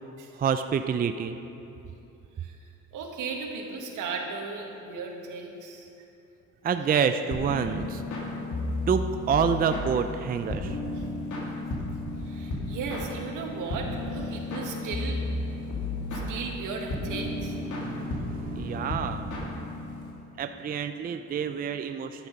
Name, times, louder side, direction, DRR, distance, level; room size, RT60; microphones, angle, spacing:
voice 1, 0.4-1.4 6.6-8.0 8.9-10.8 17.7-19.4 20.4-22.3, right 7 dB, 30° right, 8 dB, 0.4 m, -28 dB
voice 2, 2.9-5.9 10.9-11.0 12.2-15.2 16.1-17.6, right 4 dB, 80° right, 1 dB, 1.8 m, -36 dB
sound 1, 7.3-20.1, left 2 dB, 65° left, 2.6 m, -33 dB
11.5 x 10.5 x 5.3 m, 2.8 s
cardioid pair, 115°, 31 cm